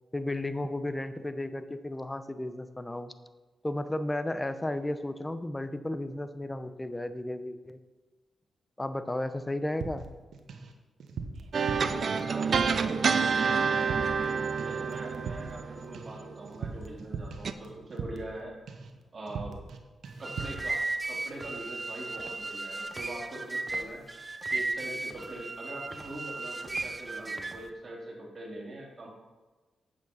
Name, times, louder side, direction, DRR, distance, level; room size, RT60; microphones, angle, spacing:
voice 1, 0.1-3.1 3.6-7.8 8.8-10.1, left 1 dB, 15° left, 11 dB, 0.8 m, -33 dB
sound 1, 9.8-10.7 11.0-12.9 13.2-13.5 13.8-14.3 14.6-18.4 18.7-19.0 19.3-19.8 20.0-20.7, right 5 dB, 75° right, 1.1 m, -40 dB
sound 2, 11.5-16.5 17.4-17.5, right 5 dB, 60° right, 0.6 m, -28 dB
voice 2, 11.8-18.5 19.1-19.6 20.2-24.0 24.5-29.1, right 1 dB, 40° right, -4 dB, 3.9 m, -42 dB
sound 3, 20.1-27.7, right 3 dB, 25° right, 0.8 m, -35 dB
9.3 x 7.3 x 5.6 m, 1.2 s
cardioid pair, 60°, 0 cm